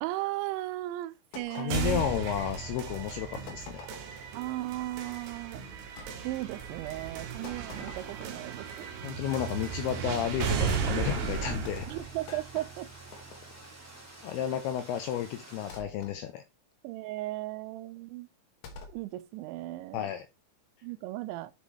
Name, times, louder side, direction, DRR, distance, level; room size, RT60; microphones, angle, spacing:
voice 1, 0.0-2.1 4.3-5.6 6.2-8.9 10.5-10.6 11.9-12.9 16.8-18.3 18.9-20.1 20.8-21.5, right 17 dB, 85° right, 2.9 m, -36 dB
sound 1, 1.3-2.8 3.5-4.3 6.0-6.1 7.4-8.6 10.2-10.7 11.6-13.8 15.7-16.2 18.6-19.0, left 5 dB, 65° left, 2.0 m, -48 dB
voice 2, 1.5-3.9 9.0-11.9 14.2-16.4 19.9-20.3, left 10 dB, 85° left, 2.3 m, -32 dB
sound 2, 1.7-13.7, right 6 dB, 65° right, 2.6 m, -35 dB
Heavy Rain, 9.2-15.8, right 2 dB, 5° right, 1.1 m, -50 dB
10.0 x 5.4 x 3.1 m
omnidirectional pair, 5.3 m